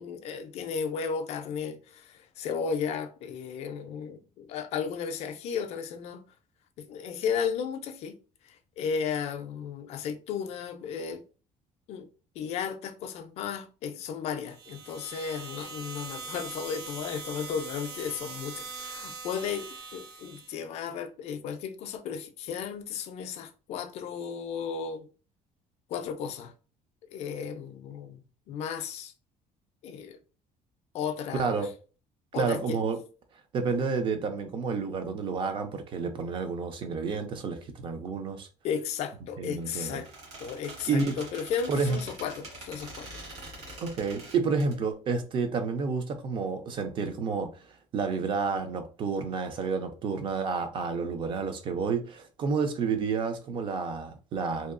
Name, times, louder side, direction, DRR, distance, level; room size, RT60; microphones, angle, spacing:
voice 1, 0.0-6.2 6.8-8.2 8.4-11.2 11.9-12.1 12.4-25.1 25.9-26.5 27.1-29.1 29.8-30.2 30.9-31.7 32.3-32.8 38.6-40.1 40.4-43.2, left 7 dB, 50° left, 0.4 m, -34 dB
sound 1, 14.4-20.6, right 4 dB, 90° right, 0.9 m, -42 dB
voice 2, 31.3-31.7 32.3-33.0 33.5-38.5 39.4-40.0 40.9-41.2 41.7-42.0 43.8-47.6 47.9-54.7, right 5 dB, 35° right, 0.4 m, -30 dB
Squeak, 39.6-44.7, right 2 dB, 50° right, 1.3 m, -45 dB
2.7 x 2.3 x 2.4 m
cardioid pair, 165°, 14 cm